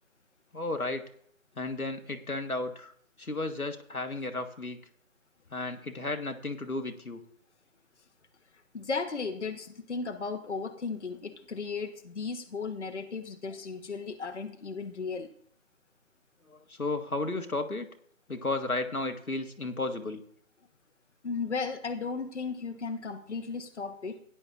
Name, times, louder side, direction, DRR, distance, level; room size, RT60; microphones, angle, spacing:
voice 1, 0.5-1.0 1.6-2.9 3.2-4.8 5.5-7.2 16.5-17.9 18.3-20.2, left 2 dB, 90° left, 6 dB, 1.5 m, -33 dB
voice 2, 8.7-15.3 21.2-24.2, left 4 dB, 55° left, 6 dB, 1.0 m, -35 dB
17.0 x 10.0 x 2.5 m, 0.64 s
figure-of-eight pair, 150°, 42 cm